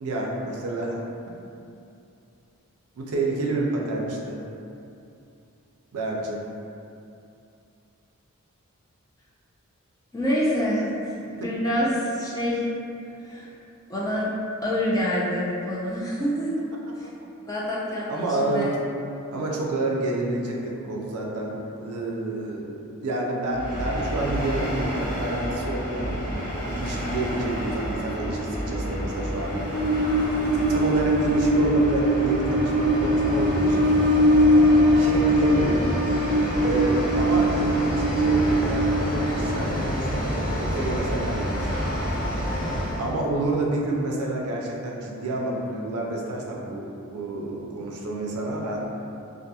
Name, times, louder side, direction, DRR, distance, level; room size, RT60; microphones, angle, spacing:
voice 1, 0.0-1.0 3.0-4.4 5.9-6.4 18.1-18.7 19.3-29.7 30.7-33.9 34.9-35.9 36.6-41.8 43.0-49.0, right 2 dB, 80° right, -2 dB, 0.4 m, -29 dB
voice 2, 10.1-11.0 11.3-12.7 13.2-13.5 13.9-14.3 14.6-16.5 17.0-17.1 17.4-18.7, equal, 15° left, -7 dB, 0.3 m, -26 dB
Train, 23.6-43.1, equal, 55° left, 1.4 m, -23 dB
2.8 x 2.4 x 2.2 m, 2.7 s
head